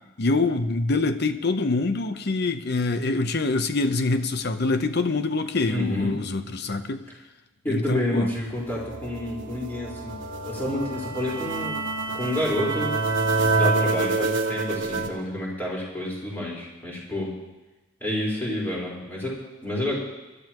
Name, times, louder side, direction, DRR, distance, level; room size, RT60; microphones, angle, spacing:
voice 1, 0.2-7.0 7.7-8.3, left 3 dB, 55° left, 10 dB, 0.8 m, -25 dB
voice 2, 5.7-6.1 7.6-10.1 10.4-11.8 12.1-12.9 13.5-17.3 18.0-20.0, left 1 dB, 10° left, -5 dB, 4.5 m, -29 dB
sound 1, 8.6-15.1, right 3 dB, 70° right, 1.3 m, -27 dB
24.0 x 12.5 x 3.0 m, 1.1 s
head